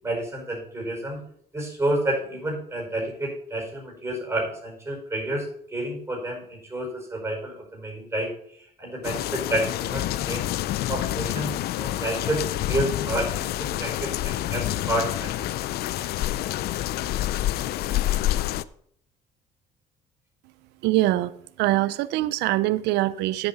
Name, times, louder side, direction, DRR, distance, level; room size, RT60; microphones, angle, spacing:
voice 1, 0.0-1.2 1.5-10.5 10.9-15.5, right 1 dB, 15° right, 0 dB, 5.3 m, -30 dB
sound 1, 9.0-18.6, left 14 dB, 70° left, 0.5 m, -28 dB
voice 2, 20.8-23.5, right 16 dB, 85° right, 17 dB, 0.5 m, -23 dB
9.5 x 8.0 x 5.8 m, 0.66 s
cardioid pair, 110°, 17 cm